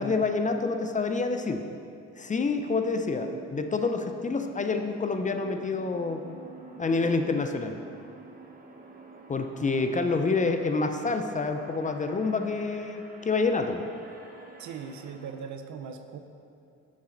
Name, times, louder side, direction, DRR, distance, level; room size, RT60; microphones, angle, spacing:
voice 1, 0.0-1.6 2.2-6.2 6.8-7.8 9.3-13.8, left 3 dB, 25° left, 6 dB, 0.5 m, -27 dB
sound 1, 2.3-15.4, right 3 dB, 30° right, 1.0 m, -48 dB
voice 2, 14.6-16.2, right 6 dB, 70° right, 7 dB, 0.7 m, -39 dB
7.3 x 6.8 x 3.8 m, 2.6 s
cardioid pair, 90°, 30 cm